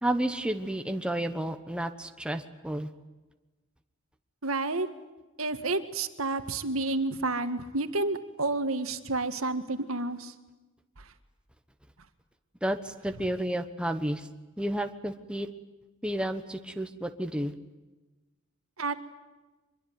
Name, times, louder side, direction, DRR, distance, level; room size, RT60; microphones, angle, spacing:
voice 1, 0.0-2.9 12.6-14.3 14.6-15.5 16.0-17.5, right 1 dB, 5° right, 7 dB, 1.2 m, -31 dB
voice 2, 4.4-4.9 5.4-10.3 11.0-11.1 18.8-18.9, right 2 dB, 75° right, 9 dB, 1.9 m, -30 dB
25.0 x 22.5 x 9.5 m, 1.1 s
head